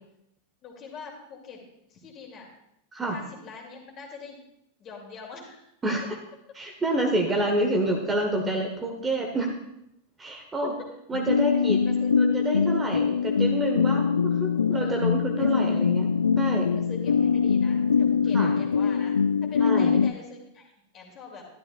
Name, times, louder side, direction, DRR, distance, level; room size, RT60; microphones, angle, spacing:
voice 1, 0.6-1.6 1.9-2.5 3.1-4.4 4.8-5.7 10.8-10.9 11.5-11.6 11.8-12.1 13.9-14.0 14.8-15.7 16.7-19.1 19.4-21.5, left 5 dB, 30° left, 0 dB, 2.6 m, -43 dB
voice 2, 5.8-6.2 6.5-9.5 10.2-10.7 11.1-11.8 12.2-16.1 16.4-16.7 18.3-18.5 19.6-20.0, right 2 dB, 15° right, 2 dB, 1.3 m, -28 dB
sound 1, 11.1-20.1, left 6 dB, 70° left, 0.3 m, -23 dB
12.5 x 12.0 x 2.4 m, 0.79 s
figure-of-eight pair, 90°, 0 cm